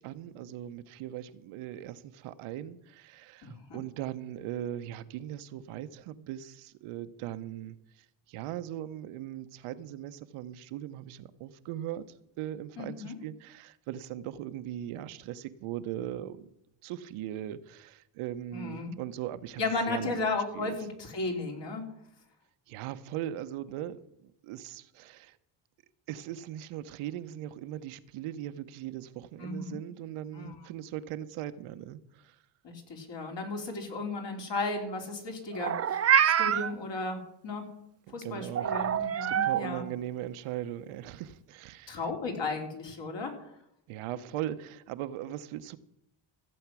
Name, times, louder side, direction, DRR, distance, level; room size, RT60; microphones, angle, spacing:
voice 1, 0.0-12.0 12.4-16.5 16.8-20.3 20.5-20.8 22.7-25.4 26.1-32.4 38.1-38.7 39.2-42.0 43.9-45.8, right 12 dB, 90° right, 0.9 m, -39 dB
voice 2, 3.4-3.8 12.8-13.1 18.5-19.0 19.6-21.8 29.4-29.8 30.3-30.5 32.6-37.6 38.1-39.9 41.9-43.3, left 3 dB, 60° left, 3.4 m, -35 dB
Meow, 35.5-36.7 38.6-39.6, right 9 dB, 30° right, 0.5 m, -25 dB
15.0 x 8.0 x 6.1 m
cardioid pair, 100°, 49 cm